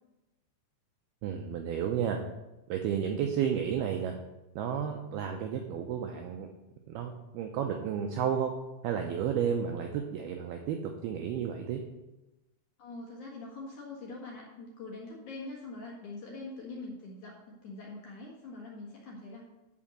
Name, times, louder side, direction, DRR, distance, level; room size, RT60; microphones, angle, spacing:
voice 1, 1.2-2.2 2.7-4.2 4.6-6.5 6.9-8.5 8.8-11.8, right 8 dB, 85° right, 3 dB, 2.2 m, -32 dB
voice 2, 12.8-19.5, left 2 dB, 55° left, -3 dB, 2.3 m, -43 dB
11.0 x 4.5 x 7.6 m, 1.0 s
omnidirectional pair, 5.3 m